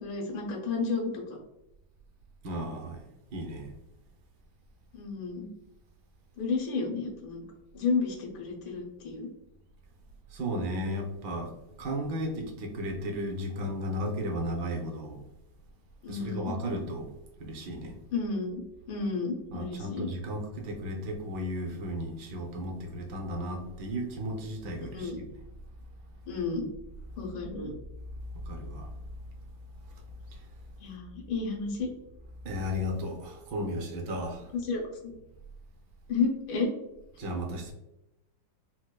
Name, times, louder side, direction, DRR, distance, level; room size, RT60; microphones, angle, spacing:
voice 1, 0.0-1.4 4.9-5.5 6.4-7.4 7.7-9.3 16.0-16.5 18.1-18.6 18.9-20.1 24.8-25.2 26.3-26.6 27.2-27.7 30.8-31.9 34.6-35.0 36.1-36.7, left 4 dB, 85° left, 0 dB, 1.6 m, -32 dB
voice 2, 2.4-3.0 3.3-3.7 10.3-11.5 11.8-15.2 16.1-17.1 17.4-17.9 19.5-25.3 28.5-28.9 30.3-30.4 32.4-34.5 37.2-37.7, equal, 70° right, 1 dB, 1.2 m, -34 dB
4.4 x 2.1 x 2.2 m, 0.90 s
omnidirectional pair, 2.1 m